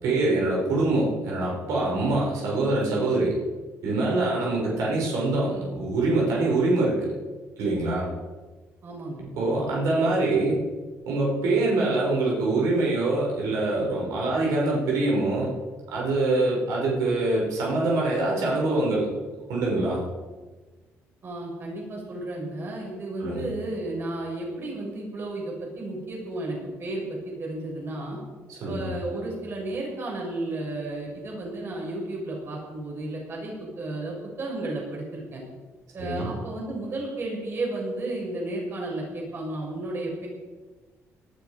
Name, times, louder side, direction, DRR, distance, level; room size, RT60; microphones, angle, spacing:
voice 1, 0.0-3.4 3.8-7.0 7.6-8.1 9.4-10.6 11.1-15.5 15.9-19.1 19.5-20.0 23.2-23.4 28.5-28.9 36.0-36.3, right 2 dB, 85° right, -3 dB, 6.0 m, -24 dB
voice 2, 8.8-9.2 21.2-28.2 28.7-35.4 35.9-40.3, right 2 dB, 45° right, -1 dB, 6.7 m, -33 dB
19.0 x 12.5 x 5.2 m, 1.3 s
cardioid pair, 105°, 5 cm